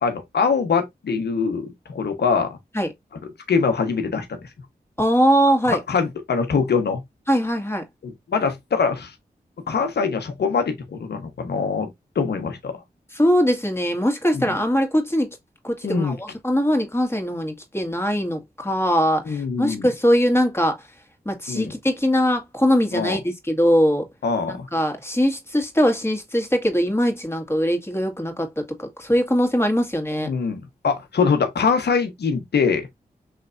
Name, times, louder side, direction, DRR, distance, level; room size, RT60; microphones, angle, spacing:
voice 1, 0.0-2.6 3.5-4.4 5.7-7.0 8.0-9.1 9.7-11.9 12.1-12.7 14.3-14.5 15.8-16.2 19.3-19.9 21.5-21.7 22.9-23.2 24.2-24.7 30.2-33.0, left 5 dB, 75° left, 1.2 m, -23 dB
voice 2, 5.0-5.8 7.3-7.8 13.2-15.4 15.6-20.8 21.3-24.1 24.7-30.3, equal, 15° left, 1.9 m, -21 dB
5.6 x 3.3 x 2.6 m
cardioid pair, 40°, 17 cm